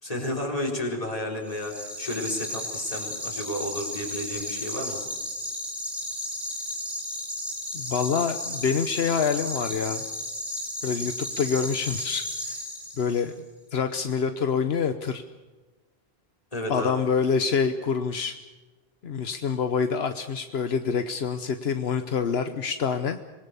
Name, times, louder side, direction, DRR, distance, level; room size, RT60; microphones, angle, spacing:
voice 1, 0.0-5.0 16.5-16.9, left 1 dB, 35° left, 0 dB, 4.7 m, -32 dB
sound 1, 1.5-13.3, left 1 dB, ahead, 4.0 m, -34 dB
voice 2, 7.7-10.0 10.8-12.6 13.0-13.4 13.7-15.2 16.7-18.4 19.0-23.2, left 6 dB, 80° left, 9 dB, 1.2 m, -26 dB
25.5 x 20.5 x 6.9 m, 1.2 s
omnidirectional pair, 1.0 m